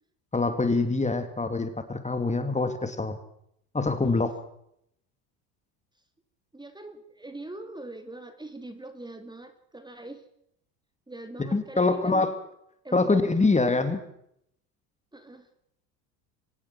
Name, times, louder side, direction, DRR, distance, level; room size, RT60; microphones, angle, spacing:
voice 1, 0.3-3.2 3.7-4.3 11.4-12.4 12.9-14.0, left 3 dB, 15° left, 9 dB, 2.9 m, -25 dB
voice 2, 6.5-10.2 11.1-12.3 12.8-13.2 15.1-15.5, right 2 dB, 10° right, 8 dB, 2.7 m, -42 dB
25.0 x 18.0 x 6.2 m, 0.73 s
hypercardioid pair, 85°, 49 cm